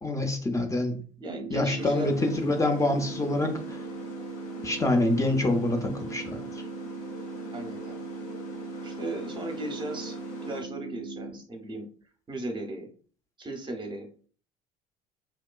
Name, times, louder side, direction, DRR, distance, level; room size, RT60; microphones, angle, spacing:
voice 1, 0.0-1.0 1.5-3.8 4.6-6.4, left 2 dB, 15° left, 4 dB, 0.5 m, -26 dB
voice 2, 1.2-2.1 7.5-8.0 8.8-10.2 10.4-11.9 12.3-12.9 13.4-14.1, right 1 dB, 20° right, 4 dB, 0.7 m, -36 dB
sound 1, 1.3-11.3, right 4 dB, 85° right, 0.4 m, -39 dB
sound 2, 1.8-10.6, left 2 dB, 65° left, 1.0 m, -45 dB
2.9 x 2.2 x 2.3 m, 0.42 s
figure-of-eight pair, 60°, 21 cm